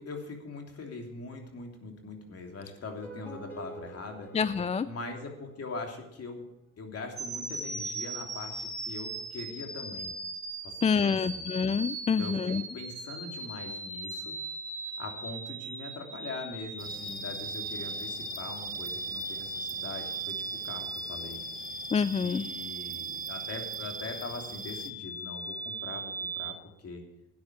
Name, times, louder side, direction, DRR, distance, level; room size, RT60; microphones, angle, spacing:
voice 1, 0.0-4.3 4.8-6.5 6.8-10.2 10.6-11.5 12.2-14.3 15.0-21.4 22.1-27.0, left 3 dB, 55° left, 3 dB, 3.1 m, -42 dB
sound 1, 2.8-6.0, right 2 dB, 5° left, 6.3 m, -48 dB
voice 2, 4.3-4.9 10.8-12.6 21.9-22.4, left 6 dB, 20° left, 15 dB, 0.4 m, -27 dB
sound 2, 7.2-26.5, right 2 dB, 10° right, 2.4 m, -39 dB
sound 3, 16.8-24.9, right 6 dB, 30° right, 0.8 m, -43 dB
13.0 x 9.6 x 6.0 m, 0.85 s
cardioid pair, 90°, 30 cm